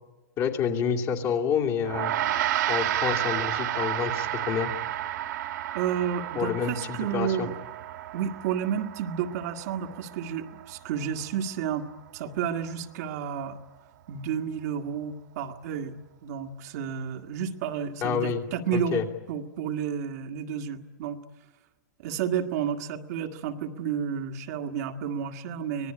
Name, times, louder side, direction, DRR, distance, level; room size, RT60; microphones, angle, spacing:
voice 1, 0.4-2.1 2.7-4.7 6.3-7.5 18.0-18.4 18.7-19.0, left 7 dB, 30° left, 2 dB, 2.6 m, -28 dB
Gong, 1.8-11.5, right 12 dB, 75° right, 2.1 m, -31 dB
voice 2, 5.7-7.6 8.1-11.9 12.1-13.6 14.1-15.9 16.2-21.2 22.0-25.9, right 8 dB, 55° right, 3 dB, 1.7 m, -31 dB
25.5 x 18.5 x 9.9 m, 1.2 s
hypercardioid pair, 140°, 10 cm